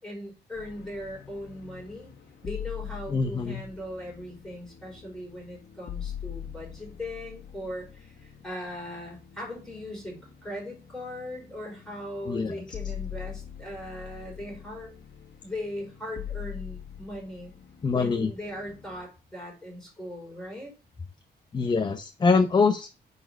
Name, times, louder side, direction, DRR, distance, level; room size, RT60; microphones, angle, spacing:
voice 1, 0.0-2.1 2.4-14.9 15.4-17.5 17.9-20.7, left 1 dB, 5° left, -3 dB, 4.9 m, -39 dB
sound 1, 0.5-19.1, left 9 dB, 90° left, 1.3 m, -43 dB
voice 2, 3.1-3.6 12.3-12.6 17.8-18.3 21.5-22.9, left 4 dB, 25° left, 8 dB, 0.6 m, -24 dB
9.5 x 4.2 x 5.1 m, 0.32 s
wide cardioid pair, 165°, 18 cm